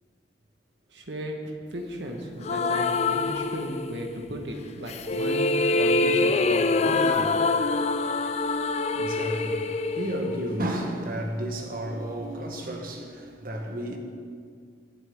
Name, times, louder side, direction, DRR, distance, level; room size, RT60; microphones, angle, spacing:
voice 1, 0.9-1.4 1.7-7.3, equal, 85° right, 1.7 m, -35 dB
sound 1, 2.4-4.2 4.9-11.0, left 3 dB, 40° left, 0.4 m, -25 dB
voice 2, 8.3-14.0, right 1 dB, 55° right, 1.5 m, -33 dB
22.0 x 7.6 x 3.9 m
head